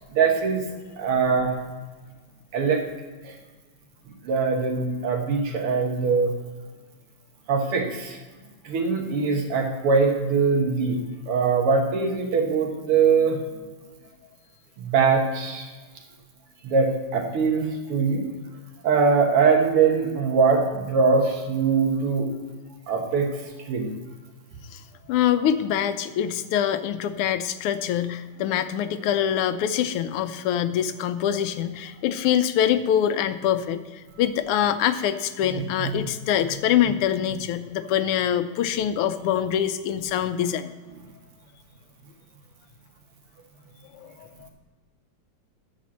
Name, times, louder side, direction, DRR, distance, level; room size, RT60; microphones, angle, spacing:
voice 1, 0.1-0.6 1.0-1.5 2.5-2.8 3.2-3.3 4.2-6.4 7.5-8.2 8.6-11.0 11.3-13.4 14.8-15.7 16.6-18.3 18.8-22.3 22.9-23.3 23.7-23.9 35.5-35.9, right 5 dB, 80° right, 2 dB, 2.3 m, -22 dB
voice 2, 25.1-40.7 43.9-44.5, left 10 dB, 85° left, 11 dB, 1.6 m, -24 dB
9.5 x 5.2 x 7.2 m, 1.3 s
omnidirectional pair, 2.4 m